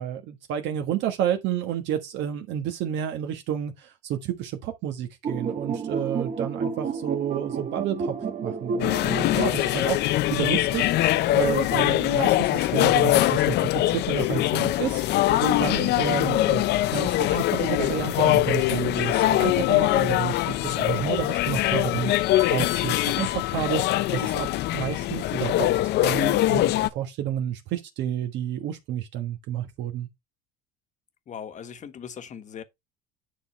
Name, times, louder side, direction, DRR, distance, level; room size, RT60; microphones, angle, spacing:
voice 1, 0.0-8.1 8.4-25.7 26.0-30.1, right 10 dB, 60° right, 1.4 m, -30 dB
sound 1, 5.2-10.6, right 5 dB, 35° right, 2.0 m, -31 dB
sound 2, 8.8-26.9, left 15 dB, 55° left, 0.7 m, -23 dB
voice 2, 31.3-32.6, left 7 dB, 35° left, 1.3 m, -39 dB
9.9 x 4.1 x 4.3 m
supercardioid pair, 110°, 21 cm